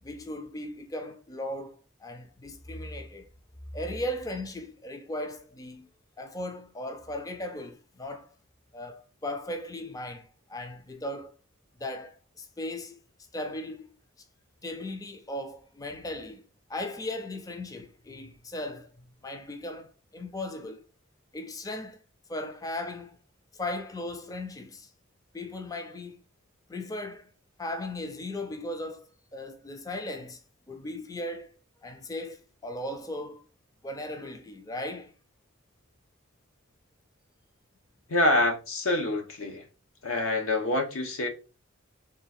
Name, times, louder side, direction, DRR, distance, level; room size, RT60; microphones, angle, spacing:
voice 1, 0.0-3.3 3.7-5.9 6.2-8.3 8.7-11.3 11.8-13.0 13.3-13.9 14.6-16.4 16.7-18.9 19.2-20.8 21.3-22.0 22.3-23.2 23.5-24.9 25.3-26.2 26.7-27.3 27.6-29.0 29.3-30.4 30.7-31.5 31.8-33.4 33.8-35.1, left 1 dB, 15° left, 0.4 m, -37 dB
voice 2, 38.1-39.7 40.0-41.3, left 1 dB, 85° left, 0.9 m, -26 dB
3.7 x 2.4 x 4.1 m
head